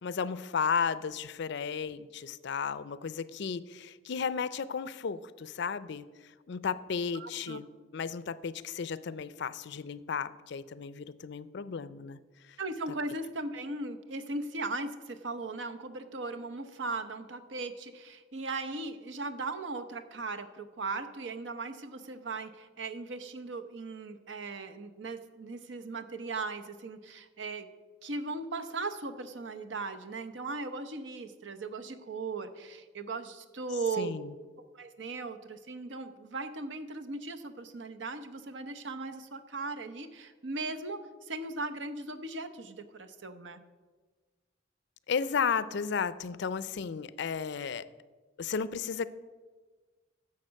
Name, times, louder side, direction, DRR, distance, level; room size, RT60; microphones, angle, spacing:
voice 1, 0.0-6.1 6.5-12.2 34.0-34.3 45.1-47.9 48.4-49.1, left 6 dB, 65° left, 16 dB, 0.5 m, -34 dB
voice 2, 7.1-7.6 12.6-27.7 28.0-34.2 34.7-43.6, right 3 dB, 70° right, 9 dB, 0.8 m, -38 dB
10.5 x 7.3 x 6.3 m, 1.4 s
head